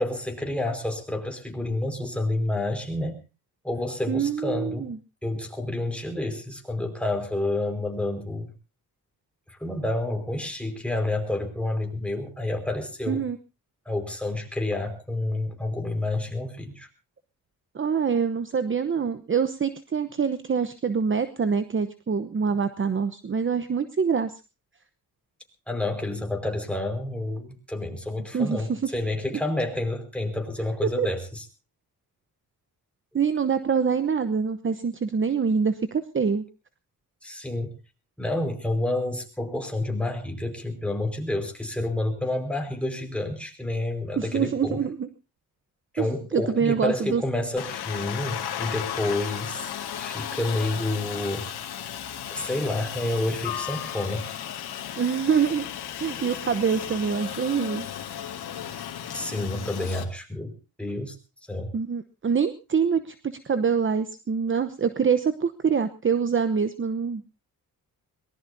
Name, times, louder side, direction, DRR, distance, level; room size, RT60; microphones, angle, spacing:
voice 1, 0.0-3.2 3.6-4.9 5.2-8.5 9.5-13.2 13.8-16.9 25.7-31.4 37.2-37.8 38.2-44.8 45.9-49.6 50.0-51.5 52.3-54.3 59.1-60.5 60.8-61.2 61.5-61.7, left 2 dB, 5° left, 3 dB, 5.0 m, -29 dB
voice 2, 4.1-5.0 13.1-13.4 17.7-24.3 28.3-28.8 31.0-31.1 33.1-36.4 44.2-45.1 46.0-47.2 55.0-55.7 56.0-57.9 61.7-67.2, right 6 dB, 30° right, 12 dB, 1.0 m, -25 dB
Aircraft, 47.6-60.0, left 10 dB, 80° left, 2.2 m, -35 dB
22.5 x 19.5 x 2.7 m, 0.32 s
cardioid pair, 85°, 38 cm